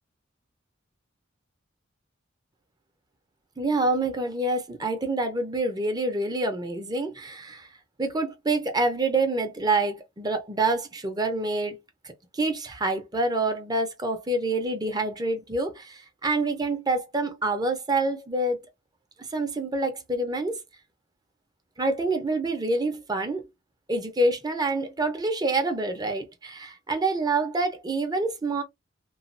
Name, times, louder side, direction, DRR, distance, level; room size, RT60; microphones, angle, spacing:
voice 1, 3.6-7.7 8.0-11.8 12.0-18.6 19.3-20.6 21.8-23.5 23.9-28.6, right 2 dB, 20° right, 0.6 m, -27 dB
3.0 x 2.2 x 2.6 m
head